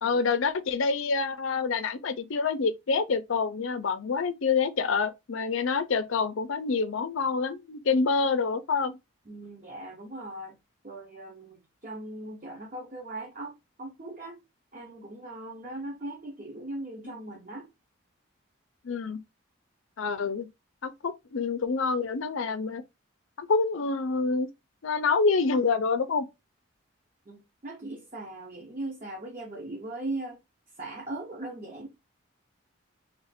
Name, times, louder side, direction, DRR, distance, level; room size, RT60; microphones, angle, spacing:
voice 1, 0.0-9.0 18.8-19.2 20.0-20.5 20.8-22.8 23.4-24.5 24.8-26.3, left 4 dB, 75° left, 0.5 m, -27 dB
voice 2, 9.3-10.6 10.8-14.4 14.7-17.7 27.3-30.4 30.8-31.9, right 2 dB, 40° right, 0.7 m, -39 dB
3.3 x 2.5 x 4.1 m
head